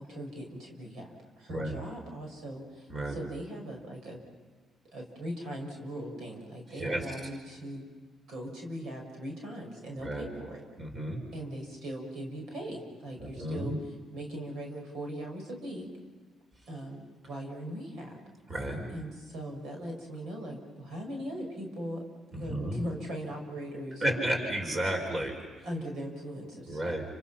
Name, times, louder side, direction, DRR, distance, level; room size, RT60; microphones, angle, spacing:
voice 1, 0.0-4.2 4.9-7.8 8.3-10.6 11.3-13.7 14.1-15.9 16.7-18.2 18.9-22.0 22.4-24.3 25.6-26.9, equal, 75° right, 1 dB, 6.2 m, -40 dB
voice 2, 6.7-7.1 10.0-10.3 10.8-11.2 13.2-13.8 18.5-18.9 22.3-22.8 24.0-25.7 26.7-27.0, right 1 dB, 40° right, 2 dB, 5.5 m, -32 dB
29.5 x 27.5 x 5.9 m, 1.4 s
cardioid pair, 90°, 0 cm